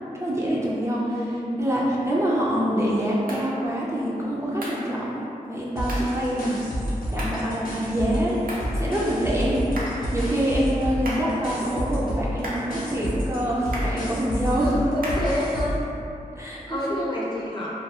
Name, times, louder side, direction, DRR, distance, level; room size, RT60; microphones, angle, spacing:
voice 1, 0.1-6.6 7.1-9.6 9.9-14.9 16.4-17.1, equal, 20° right, -6 dB, 0.3 m, -26 dB
voice 2, 0.9-1.6 8.1-8.2 14.6-15.7 16.6-17.7, left 1 dB, 30° left, -7 dB, 0.6 m, -29 dB
sound 1, 3.3-3.5 4.6-4.9 5.9-6.1 7.2-7.5 8.5-8.8 9.8-10.1 11.0-11.4 12.4-12.7 13.7-14.0 15.0-15.4, right 1 dB, 80° right, 0.5 m, -34 dB
sound 2, 5.8-8.3 8.6-15.8, equal, 85° left, 0.5 m, -29 dB
2.3 x 2.3 x 2.8 m, 2.8 s
wide cardioid pair, 50°, 15 cm